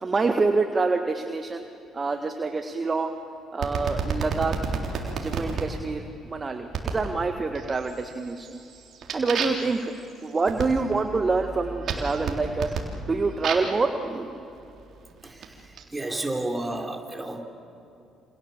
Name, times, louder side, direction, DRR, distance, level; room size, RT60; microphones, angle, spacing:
voice 1, 0.0-1.6 1.9-3.2 3.5-4.6 5.2-8.6 9.1-9.9 10.2-12.7 13.1-14.3, right 3 dB, 35° right, 5 dB, 1.7 m, -26 dB
sound 1, 3.6-5.7 6.7-7.1 7.5-8.0 8.4-13.8 14.6-15.8, right 5 dB, 60° right, 3.6 m, -32 dB
voice 2, 15.9-17.4, right 1 dB, 15° right, 3 dB, 4.5 m, -31 dB
28.5 x 28.0 x 7.4 m, 2.7 s
hypercardioid pair, 55°, 0 cm